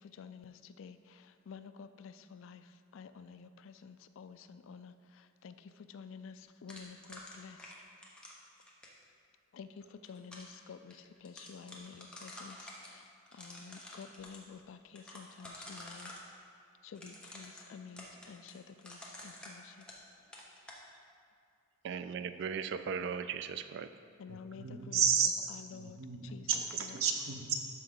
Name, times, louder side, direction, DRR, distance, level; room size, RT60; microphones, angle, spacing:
voice 1, 0.2-0.5 0.8-1.0 1.5-2.6 2.9-4.9 5.4-5.5 5.9-6.3 6.6-7.6 9.6-9.7 10.1-10.9 11.2-12.6 13.4-16.1 16.9-19.6 24.2-26.0 26.3-26.5 26.8-26.9, left 6 dB, 65° left, 11 dB, 0.3 m, -50 dB
sound 1, 6.7-9.0 9.8-10.5 10.9-11.0 11.2-12.9 13.3-14.4 15.0-16.2 16.9-20.1 20.3-20.8, left 1 dB, 5° left, 1.0 m, -49 dB
voice 2, 21.8-23.9, right 6 dB, 55° right, 10 dB, 0.3 m, -37 dB
voice 3, 24.3-25.3 25.8-27.6, right 7 dB, 85° right, 4 dB, 0.8 m, -32 dB
12.0 x 4.6 x 3.9 m, 2.2 s
head